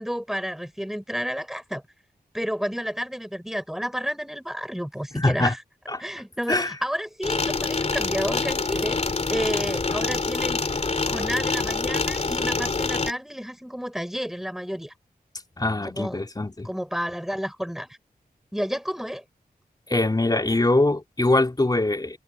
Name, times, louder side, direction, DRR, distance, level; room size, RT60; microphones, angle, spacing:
voice 1, 0.0-1.8 2.3-5.6 6.0-9.0 9.3-10.6 11.1-14.9 15.8-16.2 16.6-18.0 18.5-19.2, equal, ahead, 6.1 m, -31 dB
voice 2, 5.2-5.5 5.9-6.0 6.5-6.7 15.6-16.7 19.9-22.2, left 2 dB, 25° left, 3.2 m, -23 dB
sound 1, 7.2-13.1, left 3 dB, 45° left, 3.0 m, -26 dB
wide cardioid pair, 90°, 16 cm